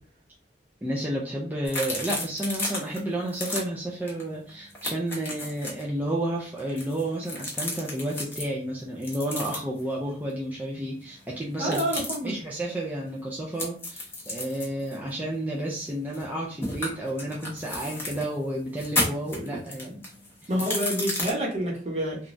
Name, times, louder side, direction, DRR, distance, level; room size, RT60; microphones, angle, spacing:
voice 1, 0.8-20.0 20.4-20.5, right 1 dB, 10° right, -4 dB, 0.4 m, -31 dB
sound 1, 1.6-3.0 3.3-3.6 4.1-4.2 4.5-5.8 6.6-8.4 9.0-9.8 11.6-12.1 13.6-16.3 16.6-18.3 18.7-21.3, left 2 dB, 15° left, 0.8 m, -32 dB
voice 2, 11.6-12.3 20.5-22.3, equal, 40° right, -2 dB, 0.9 m, -28 dB
3.1 x 2.3 x 2.5 m, 0.42 s
head